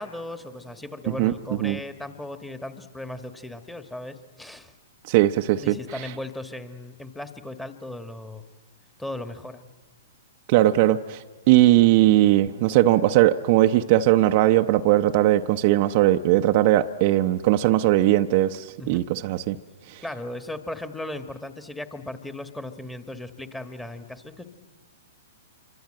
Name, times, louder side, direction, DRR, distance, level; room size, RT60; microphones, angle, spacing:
voice 1, 0.0-4.7 5.6-8.4 9.0-9.6 18.8-19.0 20.0-24.4, left 1 dB, 5° left, 8 dB, 1.5 m, -37 dB
voice 2, 5.1-5.7 10.5-11.2 11.5-19.6, right 15 dB, 45° right, 7 dB, 0.7 m, -19 dB
26.5 x 24.0 x 7.7 m, 1.4 s
hypercardioid pair, 115°, 0 cm